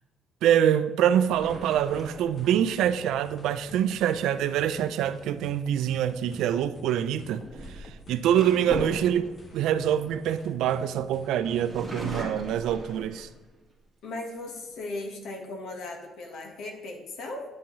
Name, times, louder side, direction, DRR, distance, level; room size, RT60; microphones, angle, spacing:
voice 1, 0.4-13.3, right 10 dB, 90° right, 0.4 m, -25 dB
sound 1, 1.1-11.7, left 2 dB, 30° left, 0.7 m, -50 dB
sound 2, 1.3-2.9 5.9-6.2 7.2-10.9 11.4-13.6 14.1-14.2 14.5-15.1, right 1 dB, ahead, 2.0 m, -39 dB
voice 2, 14.0-17.4, left 2 dB, 70° left, 1.3 m, -37 dB
9.8 x 7.1 x 3.1 m
cardioid pair, 170°, 0 cm